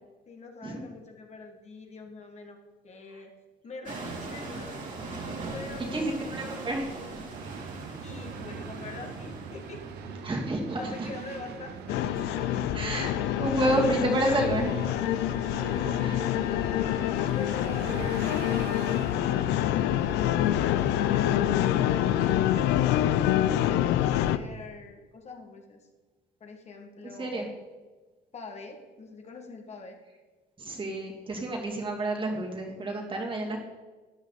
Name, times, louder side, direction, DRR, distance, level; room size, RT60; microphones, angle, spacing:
voice 1, 0.3-2.6 2.8-3.3 3.6-4.8 5.5-6.2 8.0-9.8 10.8-11.7 15.6-16.9 17.3-18.3 19.0-22.8 23.6-25.9 26.4-27.6 28.3-30.0, left 4 dB, 40° left, 3 dB, 1.9 m, -44 dB
sound 1, 3.9-10.2, right 3 dB, 50° right, 3.2 m, -40 dB
voice 2, 5.9-6.9 10.2-11.1 12.7-13.1 13.4-14.9 16.0-16.2 17.0-17.1 17.9-18.1 27.2-27.5 30.6-33.6, right 1 dB, 30° right, 0 dB, 2.6 m, -29 dB
sound 2, 7.3-22.6, right 6 dB, 75° right, 1.2 m, -42 dB
sound 3, 11.9-24.4, left 12 dB, 90° left, 0.5 m, -26 dB
13.0 x 9.6 x 4.1 m, 1.3 s
cardioid pair, 110°, 17 cm